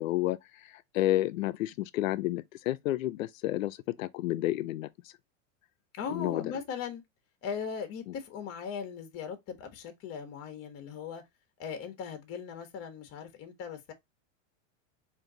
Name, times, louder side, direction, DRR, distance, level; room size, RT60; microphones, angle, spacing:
voice 1, 0.0-5.1 6.1-6.5 8.1-8.2, left 15 dB, 85° left, 0.6 m, -31 dB
voice 2, 5.9-7.0 7.4-11.2 11.6-13.9, left 6 dB, 35° left, 1.1 m, -39 dB
3.6 x 2.7 x 3.7 m
supercardioid pair, 125°, 39 cm